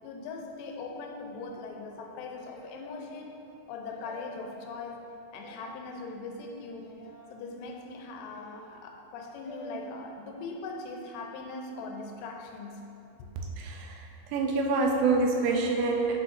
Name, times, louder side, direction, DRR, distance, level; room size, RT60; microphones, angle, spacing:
voice 1, 0.0-3.4 3.7-5.0 5.3-6.9 7.3-12.9 13.2-13.3, left 3 dB, 85° left, 2 dB, 3.0 m, -40 dB
sound 1, 2.4-3.0 3.8-4.5 5.4-5.8 6.8-7.3 8.2-8.7 9.4-9.8, left 1 dB, 60° left, 3.2 m, -49 dB
voice 2, 13.6-16.2, right 3 dB, 80° right, 1 dB, 3.0 m, -26 dB
9.1 x 7.2 x 2.6 m, 3.0 s
omnidirectional pair, 5.6 m